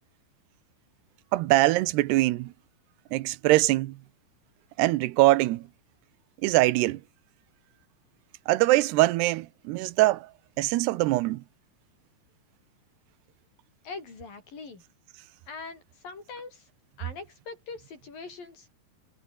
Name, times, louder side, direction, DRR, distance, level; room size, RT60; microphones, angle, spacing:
voice 1, 1.3-2.5 3.1-4.0 4.8-5.7 6.4-7.0 8.5-10.3 10.6-11.4, right 18 dB, 85° right, 2.9 m, -23 dB
voice 2, 13.8-14.8 15.5-16.7 17.0-18.7, left 4 dB, 60° left, 7.2 m, -42 dB
omnidirectional pair, 4.6 m